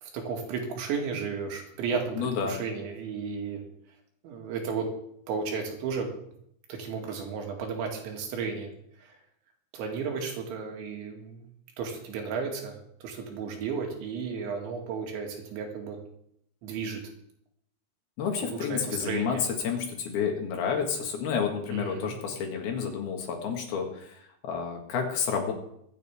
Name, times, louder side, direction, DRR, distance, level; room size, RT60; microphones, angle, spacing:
voice 1, 0.0-3.6 4.2-4.9 5.3-6.1 6.7-8.7 9.0-9.2 9.7-11.5 11.8-16.0 16.6-17.0 18.4-19.4 21.7-22.2, right 5 dB, 85° right, 2 dB, 4.4 m, -33 dB
voice 2, 2.2-2.6 18.2-19.4 19.6-24.1 24.4-25.5, left 6 dB, 65° left, 2 dB, 3.5 m, -30 dB
24.0 x 9.0 x 3.5 m, 0.73 s
omnidirectional pair, 5.2 m